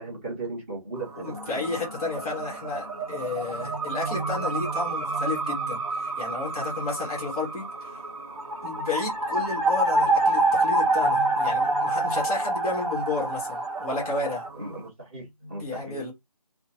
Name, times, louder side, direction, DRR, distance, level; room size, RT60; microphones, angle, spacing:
voice 1, 0.0-1.6 14.5-16.0, right 2 dB, 20° right, 1.1 m, -37 dB
sound 1, 0.9-14.9, right 3 dB, 80° right, 1.2 m, -41 dB
voice 2, 1.2-8.0 8.6-14.5 15.6-16.1, left 3 dB, 5° left, 0.6 m, -32 dB
sound 2, 1.3-14.5, right 2 dB, 60° right, 0.8 m, -27 dB
2.6 x 2.2 x 2.7 m
figure-of-eight pair, 160°, 20 cm